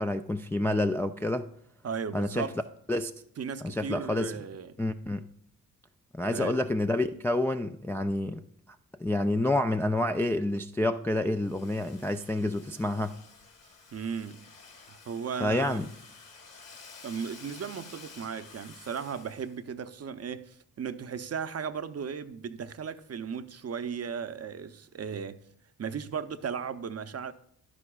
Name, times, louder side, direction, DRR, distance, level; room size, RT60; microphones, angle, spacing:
voice 1, 0.0-1.5 2.1-2.5 2.9-3.1 3.6-4.3 4.8-5.2 6.1-8.4 9.0-13.1 15.4-15.9, left 1 dB, 5° left, 0.3 m, -28 dB
voice 2, 1.8-2.6 3.4-4.8 6.2-6.6 13.9-14.4 14.9-15.9 17.0-25.4 25.8-27.3, right 6 dB, 35° right, 0.7 m, -36 dB
Domestic sounds home sounds, 11.3-19.6, left 4 dB, 35° left, 1.7 m, -52 dB
11.0 x 10.0 x 2.4 m
hypercardioid pair, 50°, 42 cm